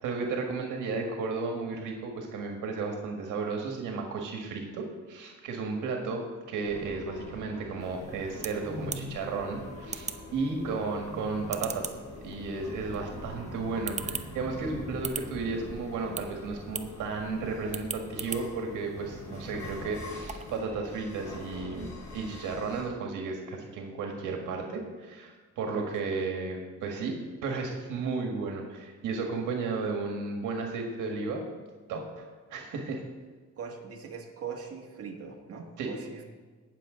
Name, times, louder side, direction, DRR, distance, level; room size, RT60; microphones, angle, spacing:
voice 1, 0.0-11.9 12.2-27.2 27.4-31.4 31.9-33.0 35.8-35.9, right 4 dB, 85° right, 2 dB, 1.8 m, -34 dB
sound 1, 6.6-22.8, left 1 dB, 70° left, 3.8 m, -43 dB
sound 2, 7.8-20.6, right 5 dB, 25° right, 0.8 m, -43 dB
voice 2, 33.6-36.2, right 6 dB, 50° right, 0 dB, 1.9 m, -41 dB
18.0 x 7.2 x 3.8 m, 1.4 s
cardioid pair, 90°, 30 cm